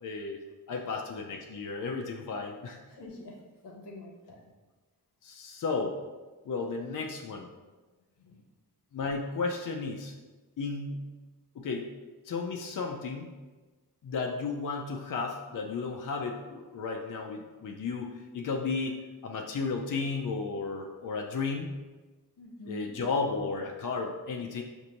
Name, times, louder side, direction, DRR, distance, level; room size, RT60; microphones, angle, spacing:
voice 1, 0.0-0.4 0.7-2.8 5.2-6.0 6.5-7.5 8.9-10.1 10.6-11.1 11.6-11.9 12.2-13.3 14.0-21.7 22.7-24.6, left 4 dB, 50° left, 2 dB, 0.5 m, -33 dB
voice 2, 2.9-3.4 3.6-4.4 8.2-8.4 22.4-23.0, left 1 dB, 80° left, -1 dB, 0.8 m, -46 dB
4.9 x 2.6 x 2.9 m, 1.2 s
cardioid pair, 45°, 40 cm